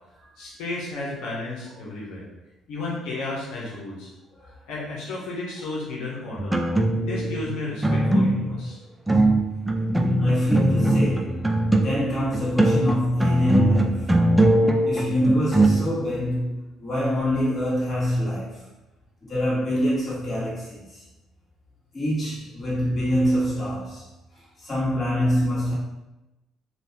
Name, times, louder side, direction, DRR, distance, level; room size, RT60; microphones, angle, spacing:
voice 1, 0.4-2.2 2.7-4.1 4.7-6.6 7.0-8.8, left 2 dB, 90° left, 0.8 m, -33 dB
sound 1, 6.4-7.5 7.8-8.7 9.1-12.1 12.3-15.7, right 1 dB, 10° right, 0.3 m, -20 dB
voice 2, 10.1-14.3 14.8-18.7 19.2-21.1 21.9-24.1 24.3-25.7, equal, 30° left, 1.4 m, -25 dB
2.7 x 2.3 x 3.4 m
cardioid pair, 95°, 0 cm